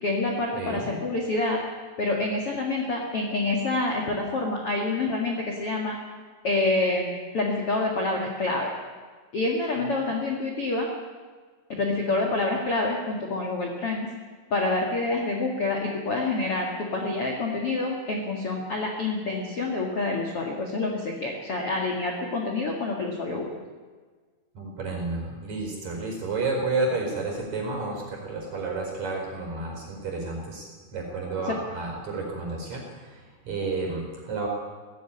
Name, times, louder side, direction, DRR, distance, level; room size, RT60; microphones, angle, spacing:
voice 1, 0.0-1.6 2.0-6.0 6.4-8.7 9.3-10.9 11.7-14.1 14.5-23.5 31.5-31.6, left 2 dB, 45° left, 0 dB, 2.1 m, -27 dB
voice 2, 0.5-1.0 24.5-34.5, right 3 dB, 40° right, 1 dB, 5.8 m, -31 dB
17.5 x 15.5 x 9.9 m, 1.5 s
omnidirectional pair, 5.4 m